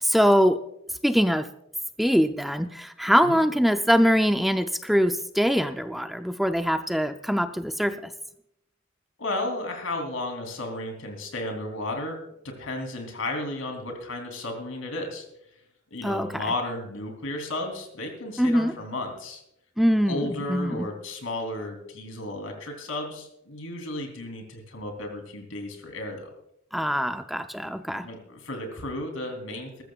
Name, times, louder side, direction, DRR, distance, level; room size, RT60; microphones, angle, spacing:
voice 1, 0.0-0.6 1.0-1.5 2.0-8.1 16.0-16.5 18.4-18.7 19.8-20.9 26.7-28.1, equal, ahead, 8 dB, 0.4 m, -23 dB
voice 2, 9.2-12.2 12.4-15.2 15.9-19.4 20.1-26.3 28.0-29.8, left 2 dB, 85° left, 3 dB, 3.2 m, -33 dB
20.5 x 14.0 x 2.4 m, 0.78 s
head